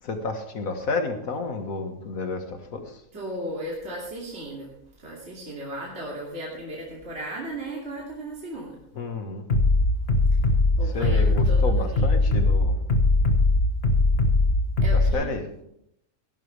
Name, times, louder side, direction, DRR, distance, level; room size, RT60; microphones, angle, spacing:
voice 1, 0.0-3.0 9.0-9.5 10.8-12.7 14.9-15.5, left 3 dB, 70° left, 6 dB, 2.0 m, -31 dB
voice 2, 3.1-4.7 5.0-8.8 10.8-12.2 14.8-15.3, right 1 dB, 45° right, -4 dB, 3.0 m, -36 dB
Bass drum, 9.5-15.1, left 2 dB, 45° left, 1.6 m, -20 dB
17.0 x 12.0 x 3.4 m, 0.76 s
omnidirectional pair, 1.6 m